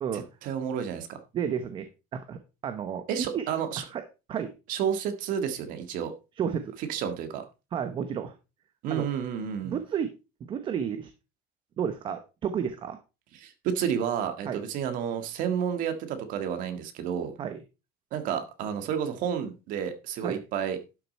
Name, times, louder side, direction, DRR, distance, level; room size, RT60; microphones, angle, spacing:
voice 1, 0.1-1.2 3.1-3.8 4.7-6.1 6.9-7.5 8.8-9.8 13.4-17.3 18.1-20.8, right 8 dB, 50° right, 1.8 m, -31 dB
voice 2, 1.3-3.4 3.8-4.0 4.3-4.5 6.4-6.8 7.7-8.3 8.9-9.1 9.6-10.1 10.5-11.1 11.8-13.0 14.4-14.6 17.4-17.6 20.2-20.4, right 8 dB, 30° right, 0.9 m, -32 dB
11.5 x 6.6 x 4.2 m
cardioid pair, 175°, 17 cm